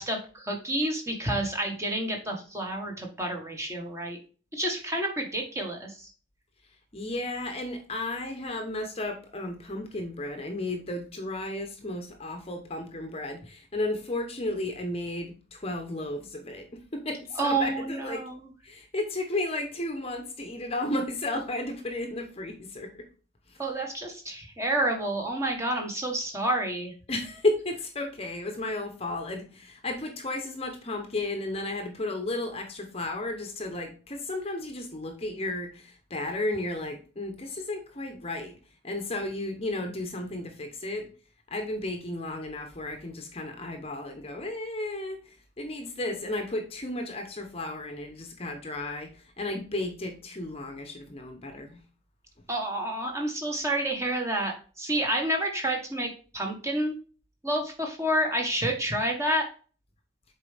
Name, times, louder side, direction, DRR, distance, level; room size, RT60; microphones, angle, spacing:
voice 1, 0.0-4.2 4.5-6.1 17.4-18.5 23.6-26.9 52.5-56.9 57.4-59.5, right 1 dB, 15° right, 1 dB, 1.3 m, -29 dB
voice 2, 6.9-18.2 18.6-23.1 23.5-23.6 27.1-38.6 38.8-41.1 41.5-51.8 52.4-52.5, left 2 dB, 30° left, 5 dB, 0.9 m, -33 dB
7.3 x 4.5 x 3.4 m, 0.38 s
head